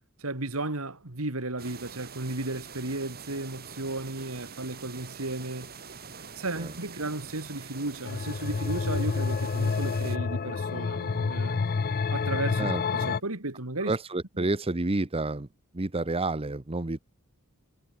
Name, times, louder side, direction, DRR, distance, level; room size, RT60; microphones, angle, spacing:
voice 1, 0.2-5.7 6.2-11.6 12.1-13.9 14.4-14.5, right 2 dB, 70° right, 2.7 m, -34 dB
sound 1, 1.6-10.2, right 5 dB, 45° right, 5.2 m, -45 dB
sound 2, 8.1-13.2, left 4 dB, 45° left, 0.5 m, -28 dB
voice 2, 12.6-13.1 13.8-15.5 15.7-17.0, right 2 dB, 25° right, 1.0 m, -30 dB
head